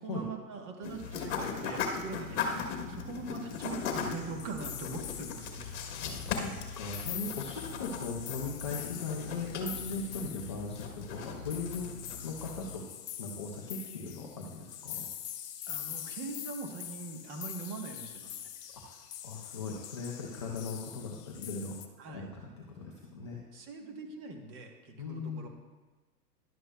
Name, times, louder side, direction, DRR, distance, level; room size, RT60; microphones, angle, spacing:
voice 1, 0.0-5.7 15.7-18.5 22.0-22.3 23.5-25.5, right 4 dB, 30° right, 4 dB, 1.0 m, -42 dB
sound 1, 0.8-12.8, left 6 dB, 45° left, 1.2 m, -38 dB
sound 2, 3.5-21.9, left 10 dB, 70° left, 0.9 m, -44 dB
voice 2, 6.0-12.0 12.2-12.8 13.2-15.0 18.7-21.8 22.1-23.4 25.0-25.5, left 3 dB, 20° left, -3 dB, 0.3 m, -39 dB
11.0 x 7.7 x 2.2 m, 1.2 s
hypercardioid pair, 130°, 48 cm